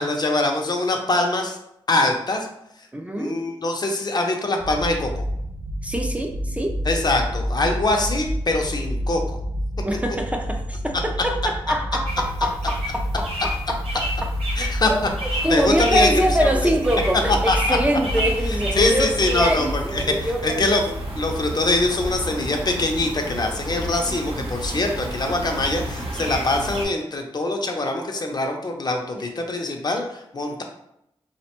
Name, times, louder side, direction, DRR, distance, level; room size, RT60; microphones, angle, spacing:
voice 1, 0.0-1.6 1.9-2.5 3.2-5.2 6.9-9.2 14.6-14.9 15.5-16.5 17.5-17.8 18.8-19.7 19.9-20.8 21.2-30.6, left 2 dB, 45° left, 3 dB, 0.5 m, -23 dB
voice 2, 2.9-3.4 5.8-6.8 9.8-13.8 14.9-15.0 15.4-21.0, equal, 15° right, 2 dB, 0.3 m, -24 dB
sound 1, 4.6-19.9, equal, 45° right, 0.9 m, -29 dB
sound 2, 12.0-26.8, equal, 80° right, 0.7 m, -31 dB
2.5 x 2.1 x 2.9 m, 0.78 s
cardioid pair, 60°, 10 cm